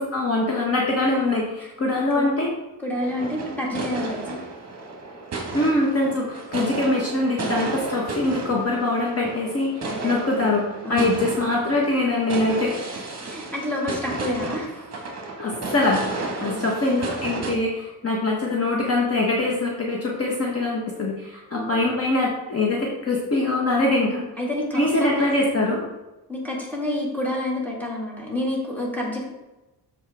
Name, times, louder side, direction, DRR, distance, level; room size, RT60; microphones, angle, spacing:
voice 1, 0.1-2.5 5.5-12.8 15.4-24.2 24.7-25.8, left 2 dB, 35° left, -2 dB, 1.3 m, -23 dB
voice 2, 1.6-2.3 2.8-4.4 9.8-10.2 10.8-11.3 12.9-14.9 16.4-16.7 21.5-21.9 24.0-25.4 26.3-29.2, left 1 dB, 5° left, -3 dB, 2.1 m, -29 dB
sound 1, 3.0-17.5, right 3 dB, 35° right, 1.7 m, -33 dB
13.5 x 4.5 x 3.5 m, 1.0 s
wide cardioid pair, 155°, 42 cm